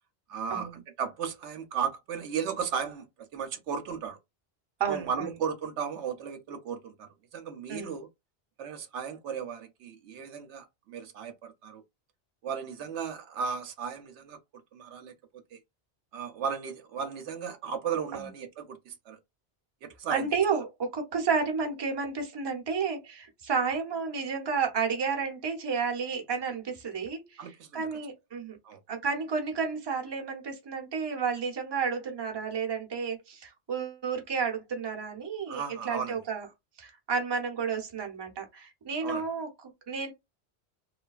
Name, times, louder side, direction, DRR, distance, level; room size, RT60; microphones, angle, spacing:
voice 1, 0.3-4.2 4.9-8.1 8.6-11.8 12.4-14.4 14.7-15.1 15.5-15.6 16.1-19.2 19.8-20.3 27.4-27.9 28.6-28.8 35.5-36.2 39.0-39.3, right 7 dB, 75° right, 0.9 m, -35 dB
voice 2, 4.8-5.3 7.7-7.9 18.1-18.3 20.1-27.4 27.7-28.6 28.9-36.5 36.8-40.1, right 5 dB, 25° right, 0.6 m, -31 dB
3.1 x 2.2 x 2.3 m
omnidirectional pair, 1.2 m